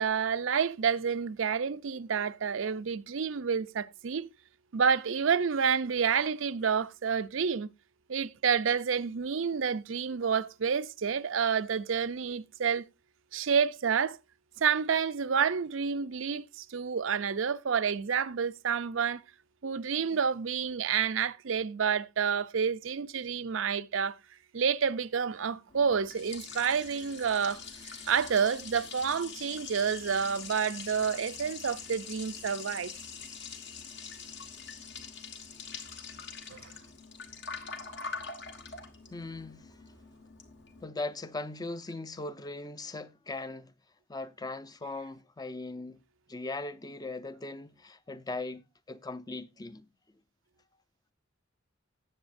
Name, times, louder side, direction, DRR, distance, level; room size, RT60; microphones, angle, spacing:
voice 1, 0.0-4.3 4.7-7.7 8.1-12.9 13.3-14.2 14.6-19.2 19.6-24.1 24.5-32.9 36.5-36.7, right 6 dB, 80° right, 0.5 m, -29 dB
Liquid, 25.7-40.8, left 5 dB, 60° left, 1.4 m, -44 dB
voice 2, 39.1-39.6 40.8-43.7 44.1-46.0 46.3-48.6 48.9-49.8, left 2 dB, 20° left, 0.5 m, -39 dB
17.5 x 7.3 x 2.6 m
head